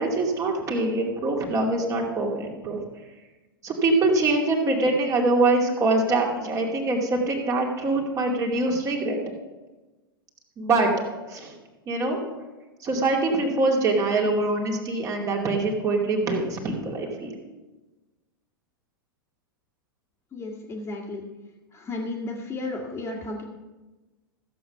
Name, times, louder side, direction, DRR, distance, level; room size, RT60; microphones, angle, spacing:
voice 1, 0.0-2.8 3.6-9.2 10.6-10.9 11.3-11.5 11.9-12.2 12.8-17.3, right 2 dB, 30° right, 0 dB, 2.5 m, -24 dB
voice 2, 20.3-21.2 21.7-23.4, left 2 dB, 20° left, -4 dB, 2.0 m, -33 dB
14.5 x 7.9 x 5.8 m, 1.2 s
figure-of-eight pair, 95°, 12 cm